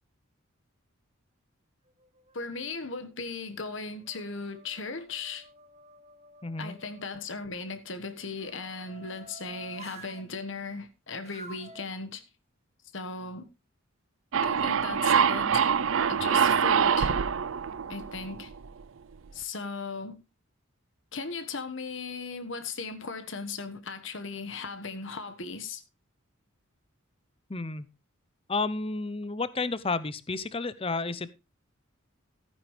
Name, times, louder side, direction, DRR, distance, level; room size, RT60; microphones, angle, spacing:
sound 1, 1.9-2.7 3.3-7.2 8.1-10.3 11.2-11.9, right 2 dB, 30° right, 1.5 m, -51 dB
voice 1, 2.3-5.5 6.6-12.2 12.9-13.5 14.4-15.7 16.1-17.1 17.9-18.5 19.3-20.2 21.1-25.8, left 4 dB, 60° left, 1.5 m, -37 dB
voice 2, 6.4-6.8 27.5-27.9 28.5-31.4, left 3 dB, 25° left, 0.7 m, -31 dB
sound 2, 14.3-18.8, right 7 dB, 70° right, 0.5 m, -25 dB
14.5 x 9.6 x 3.3 m
head